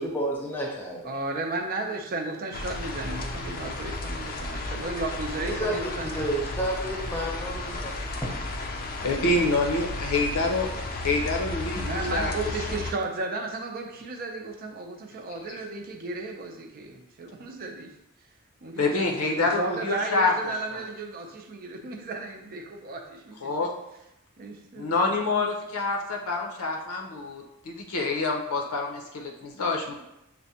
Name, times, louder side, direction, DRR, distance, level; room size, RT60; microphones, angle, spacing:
voice 1, 0.0-1.0 5.4-8.4, right 1 dB, 10° left, -2 dB, 0.7 m, -31 dB
voice 2, 1.0-6.4 8.7-9.2 11.7-17.9 18.6-19.1 19.4-23.5 24.4-25.2, right 2 dB, 40° right, 3 dB, 0.4 m, -34 dB
sound 1, 2.5-12.9, left 2 dB, 40° left, 0.4 m, -33 dB
voice 3, 9.0-10.7 11.0-12.3 15.5-15.6 18.8-20.8 23.4-23.7 24.8-30.0, left 3 dB, 80° left, 1 dB, 0.6 m, -27 dB
5.9 x 2.1 x 2.7 m, 0.86 s
head